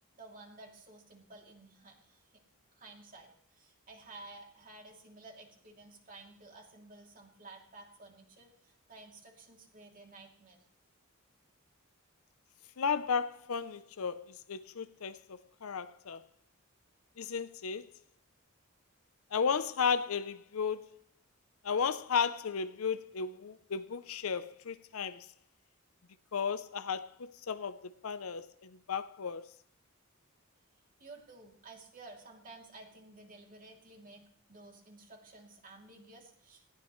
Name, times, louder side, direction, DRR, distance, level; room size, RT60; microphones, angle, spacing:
voice 1, 0.2-2.2 2.7-10.6 31.0-34.2 34.5-36.6, right 2 dB, 40° right, 2.9 m, -53 dB
voice 2, 12.8-15.2 15.6-16.2 17.2-17.9 19.3-20.8 21.6-25.3 26.3-29.5, left 6 dB, 80° left, 0.6 m, -34 dB
19.5 x 16.0 x 3.2 m
head